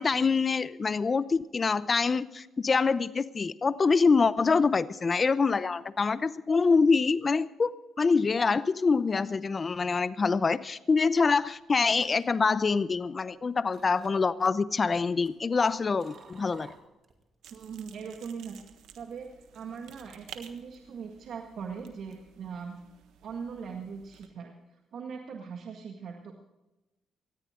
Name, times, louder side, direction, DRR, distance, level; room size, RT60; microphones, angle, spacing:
voice 1, 0.0-16.7, left 4 dB, 35° left, 15 dB, 0.6 m, -25 dB
sound 1, 11.5-13.3 13.7-14.4 15.0-17.2 17.5-17.9, right 4 dB, 50° right, 2.5 m, -54 dB
sound 2, 17.4-24.3, right 9 dB, 85° right, 1.4 m, -53 dB
voice 2, 17.5-18.7 19.0-19.3 19.5-22.8 23.2-24.5 24.9-26.4, right 6 dB, 65° right, 2 dB, 1.9 m, -40 dB
19.0 x 14.0 x 3.8 m, 1.0 s
cardioid pair, 90°, 0 cm